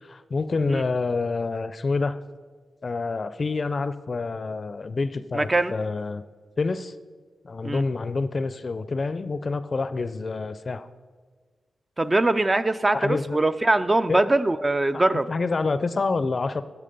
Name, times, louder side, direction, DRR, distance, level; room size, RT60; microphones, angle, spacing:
voice 1, 0.0-2.2 2.8-6.2 6.6-6.9 7.4-10.9 12.9-13.4 14.1-14.3 14.9-16.6, left 3 dB, 45° left, 13 dB, 0.4 m, -27 dB
voice 2, 5.4-5.7 7.6-7.8 12.0-15.3, right 2 dB, 20° right, 12 dB, 0.4 m, -22 dB
10.0 x 8.4 x 5.3 m, 1.5 s
wide cardioid pair, 105°, 0 cm